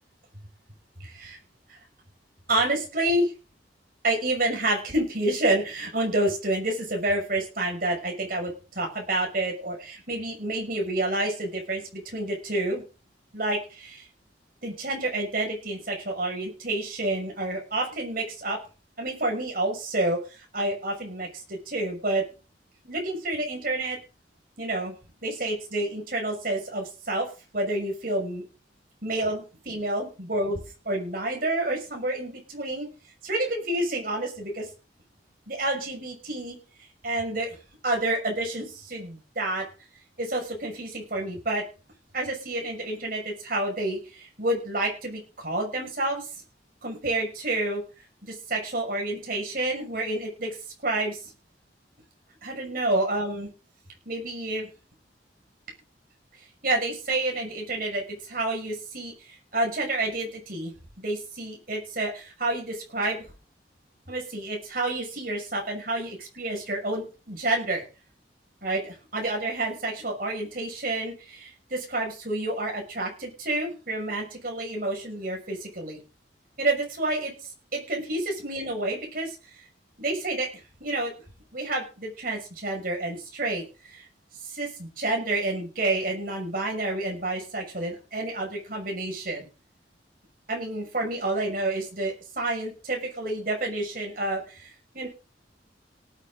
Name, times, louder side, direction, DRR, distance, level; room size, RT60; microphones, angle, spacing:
voice 1, 1.0-1.4 2.5-3.3 4.0-12.8 13.3-14.0 14.6-18.6 19.0-22.2 22.8-24.0 24.6-24.9 25.2-27.3 27.5-28.4 29.0-30.6 30.8-32.9 33.2-34.7 35.5-36.6 37.0-37.6 37.8-39.7 40.2-41.6 42.1-46.3 46.8-47.8 48.2-50.6 50.8-51.2 52.4-53.5 54.1-54.7 56.6-63.3 64.1-67.8 68.6-76.0 76.6-77.3 77.7-79.4 80.0-80.5 80.8-81.1 81.5-84.0 84.5-89.5 90.5-95.1, right 2 dB, 50° right, 1 dB, 6.3 m, -29 dB
18.5 x 9.9 x 3.9 m, 0.33 s
head